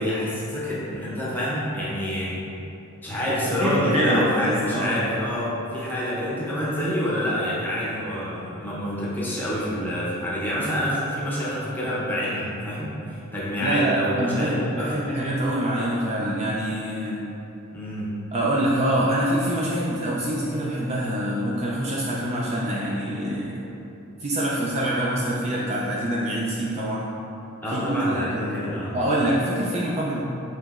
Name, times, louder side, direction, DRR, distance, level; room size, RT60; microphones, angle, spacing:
voice 1, 0.0-2.3 3.0-12.9 13.3-14.9 17.7-18.1 27.6-29.0, equal, 10° left, -7 dB, 0.7 m, -27 dB
voice 2, 3.6-5.1 13.6-17.2 18.3-23.6 24.2-27.1 27.7-30.2, right 1 dB, 30° right, -5 dB, 0.3 m, -25 dB
5.4 x 3.0 x 2.4 m, 2.8 s
head